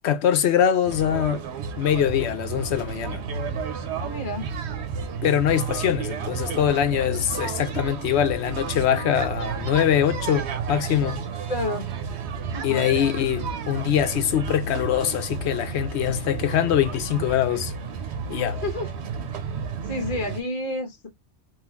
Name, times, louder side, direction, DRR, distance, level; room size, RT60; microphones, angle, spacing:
voice 1, 0.0-1.5 1.8-3.2 5.2-11.2 12.6-17.7 18.3-18.6, left 10 dB, 80° left, 0.9 m, -23 dB
sound 1, 0.8-20.4, right 6 dB, 80° right, 1.0 m, -32 dB
voice 2, 4.0-4.5 11.5-11.8 12.5-12.8 18.6-18.9 19.9-21.1, left 1 dB, 50° left, 1.1 m, -29 dB
3.7 x 2.4 x 2.9 m
omnidirectional pair, 1.1 m